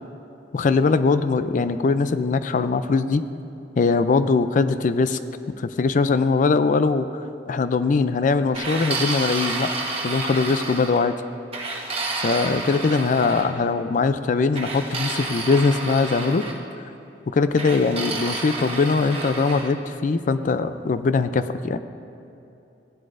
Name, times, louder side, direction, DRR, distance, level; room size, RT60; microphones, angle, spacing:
voice 1, 0.5-3.2 3.8-5.2 5.6-7.1 7.5-9.7 10.0-11.1 12.2-16.4 17.3-21.8, left 4 dB, 45° left, 11 dB, 0.4 m, -21 dB
sound 1, 8.5-11.1 11.5-13.5 14.5-16.6 17.6-19.7, right 3 dB, 35° right, 1.2 m, -30 dB
16.5 x 11.0 x 2.6 m, 2.8 s
head